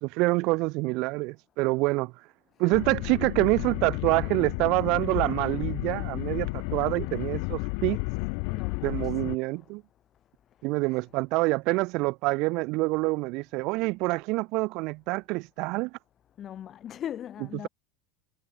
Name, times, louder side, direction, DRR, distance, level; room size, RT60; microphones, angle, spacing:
voice 1, 0.0-2.3 2.6-8.0 8.8-9.8 10.6-15.9, right 24 dB, 60° right, 1.5 m, -26 dB
sound 1, 2.7-9.3, left 40 dB or more, 65° left, 0.9 m, -32 dB
voice 2, 8.5-9.1 10.9-11.0 16.4-17.7, left 10 dB, 35° left, 5.2 m, -39 dB
supercardioid pair, 110°, 0 cm